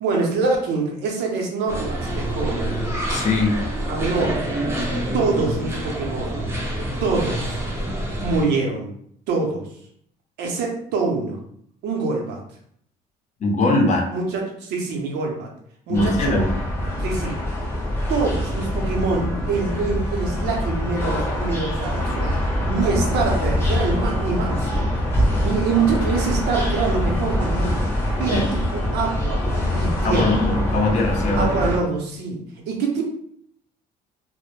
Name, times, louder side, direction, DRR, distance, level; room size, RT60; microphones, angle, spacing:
voice 1, 0.0-2.7 3.9-4.4 5.1-6.4 7.0-7.6 8.2-8.9 9.3-9.7 10.4-11.4 11.8-12.4 14.1-15.5 15.9-16.4 17.0-17.4 18.1-22.3 22.7-24.9 25.4-27.9 28.2-29.4 29.7-30.5 31.4-33.0, right 4 dB, 80° right, 0 dB, 0.7 m, -25 dB
sound 1, 1.7-8.5, right 1 dB, 15° right, 0.5 m, -27 dB
voice 2, 3.1-3.6 13.4-14.0 15.9-16.5 16.8-17.0 28.3-28.4 30.0-31.5, left 2 dB, 45° left, 1 dB, 0.6 m, -21 dB
sound 2, 15.9-31.8, left 1 dB, 15° left, 0.9 m, -24 dB
2.1 x 2.0 x 3.0 m, 0.66 s
cardioid pair, 110°, 17 cm